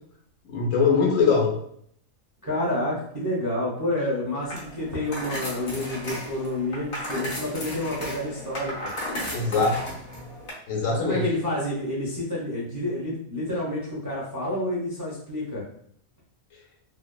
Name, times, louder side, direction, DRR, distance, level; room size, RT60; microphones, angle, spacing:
voice 1, 0.5-1.5 9.3-9.8 10.7-11.2, left 5 dB, 70° left, 0 dB, 1.0 m, -22 dB
voice 2, 2.4-8.9 10.9-15.6, left 1 dB, 30° right, -7 dB, 0.3 m, -29 dB
sound 1, 4.4-10.5, left 1 dB, 50° left, 0.8 m, -35 dB
2.8 x 2.0 x 2.2 m, 0.67 s
omnidirectional pair, 1.4 m